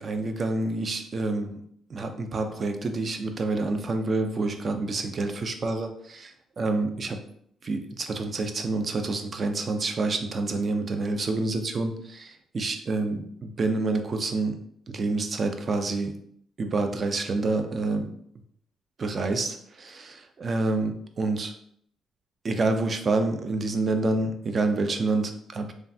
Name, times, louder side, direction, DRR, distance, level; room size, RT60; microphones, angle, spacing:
voice 1, 0.0-1.6 1.9-7.2 7.6-14.6 14.9-16.1 16.6-18.1 19.0-21.5 22.4-25.7, right 3 dB, 40° right, 6 dB, 0.4 m, -28 dB
3.2 x 2.3 x 2.6 m, 0.66 s
cardioid pair, 90°, 0 cm